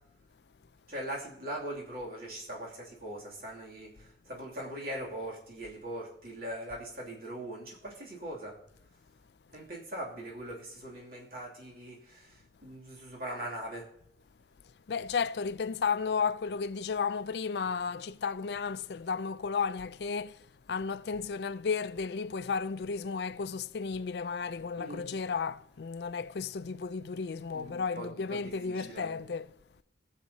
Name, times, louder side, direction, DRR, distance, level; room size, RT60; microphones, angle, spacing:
voice 1, 0.9-8.5 9.5-13.9 24.8-25.1 27.5-29.1, right 1 dB, 55° right, 2.7 m, -41 dB
voice 2, 14.9-20.4 20.7-29.5, left 5 dB, 70° left, 0.4 m, -33 dB
21.5 x 7.4 x 2.8 m
head